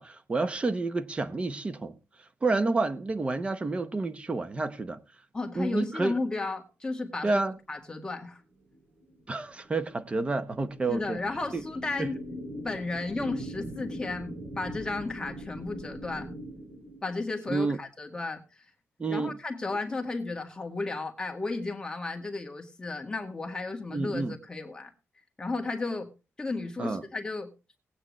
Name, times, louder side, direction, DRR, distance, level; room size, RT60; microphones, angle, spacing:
voice 1, 0.0-1.9 2.4-5.0 5.5-6.1 7.2-7.6 9.3-11.2 11.5-11.6 12.0-12.1 17.5-17.8 19.0-19.4 23.9-24.3 26.8-27.0, right 3 dB, 25° right, 1.0 m, -29 dB
voice 2, 5.3-8.4 10.9-12.2 12.6-16.3 17.0-18.4 19.1-24.9 25.4-26.1 26.4-27.5, left 3 dB, 15° left, 1.9 m, -34 dB
sound 1, 8.7-17.5, right 1 dB, 45° right, 3.1 m, -42 dB
19.5 x 8.9 x 3.2 m
wide cardioid pair, 160°, 5 cm